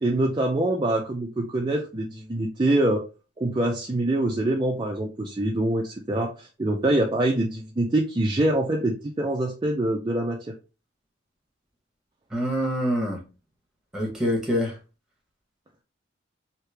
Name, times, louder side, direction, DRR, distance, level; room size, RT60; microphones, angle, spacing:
voice 1, 0.0-3.1 3.4-10.5, right 1 dB, 25° right, 0 dB, 0.4 m, -25 dB
voice 2, 12.3-13.2 13.9-14.8, equal, 5° right, -1 dB, 1.1 m, -25 dB
3.1 x 2.8 x 3.3 m, 0.31 s
head